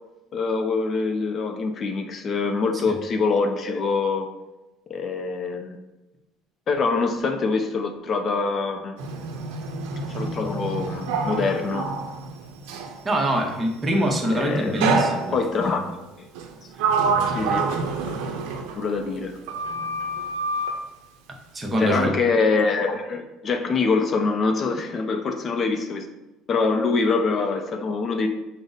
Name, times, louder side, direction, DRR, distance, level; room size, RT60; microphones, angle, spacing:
voice 1, 0.3-4.3 4.9-5.8 6.7-9.0 10.1-11.9 14.3-15.1 15.3-16.3 17.3-17.7 18.0-18.2 18.7-19.4 21.8-26.1 26.5-28.3, left 4 dB, 40° left, 5 dB, 0.4 m, -24 dB
Sliding door, 9.0-13.0 14.8-15.7 16.4-19.2 19.5-20.8, right 4 dB, 90° right, 0.5 m, -27 dB
voice 2, 13.0-15.4 21.3-22.1, right 1 dB, 20° right, 2 dB, 0.7 m, -24 dB
5.0 x 2.0 x 3.9 m, 1.0 s
cardioid pair, 120°, 0 cm